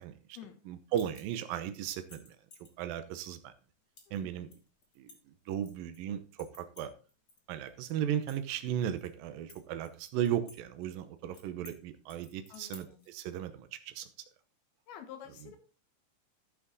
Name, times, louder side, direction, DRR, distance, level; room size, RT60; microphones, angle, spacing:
voice 1, 0.0-0.4 0.7-2.4 2.8-3.5 4.1-4.5 5.0-6.9 7.5-14.1, right 10 dB, 75° right, 10 dB, 2.6 m, -36 dB
sound 1, 0.9-1.5 1.9-2.7 3.2-3.3 4.0-4.2 4.5-6.0 6.4-7.4 7.7-7.8 8.1-9.1 9.5-10.6 10.8-10.9 11.3-11.8 12.1-13.1, left 3 dB, 35° left, 2.1 m, -54 dB
voice 2, 12.5-13.0 14.9-15.6, left 9 dB, 85° left, 8 dB, 3.2 m, -49 dB
13.5 x 5.7 x 4.0 m, 0.37 s
omnidirectional pair, 4.3 m